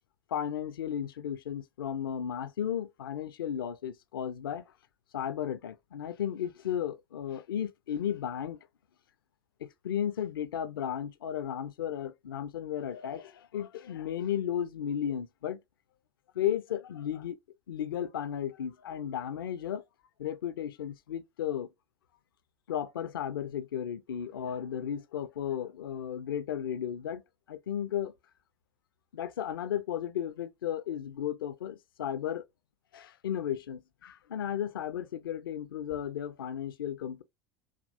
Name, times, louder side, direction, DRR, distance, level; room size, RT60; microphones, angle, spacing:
voice 1, 0.3-4.7 5.1-8.6 9.6-15.6 16.3-17.4 17.7-19.8 20.2-21.7 22.7-27.2 27.5-28.1 29.1-32.4 32.9-37.2, left 9 dB, 70° left, 0.5 m, -34 dB
4.9 x 2.4 x 2.5 m
figure-of-eight pair, 70°, 12 cm